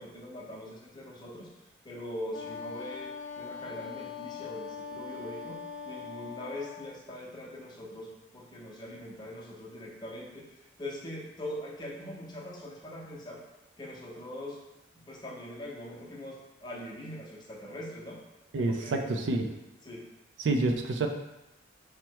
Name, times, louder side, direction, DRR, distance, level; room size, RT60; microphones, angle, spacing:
voice 1, 0.0-1.5 1.8-13.4 13.8-14.6 15.1-18.2 18.6-19.0 19.5-20.0, left 1 dB, 25° left, -3 dB, 0.7 m, -42 dB
Wind instrument woodwind instrument, 2.3-7.0, left 6 dB, 80° left, 0.4 m, -41 dB
voice 2, 18.5-19.4 20.4-21.1, right 2 dB, 65° right, 5 dB, 0.4 m, -28 dB
4.4 x 2.1 x 4.5 m, 0.95 s
head